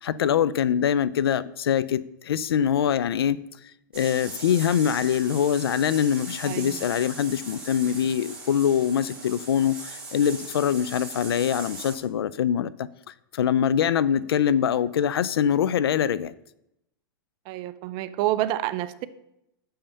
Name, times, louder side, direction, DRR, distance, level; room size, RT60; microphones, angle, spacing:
voice 1, 0.0-3.4 3.9-16.3, left 9 dB, 90° left, 0.4 m, -24 dB
sound 1, 3.9-12.0, right 3 dB, 10° right, 2.7 m, -40 dB
voice 2, 6.4-6.9 17.5-19.1, right 14 dB, 40° right, 0.5 m, -28 dB
6.5 x 5.6 x 6.8 m
hypercardioid pair, 135°, 12 cm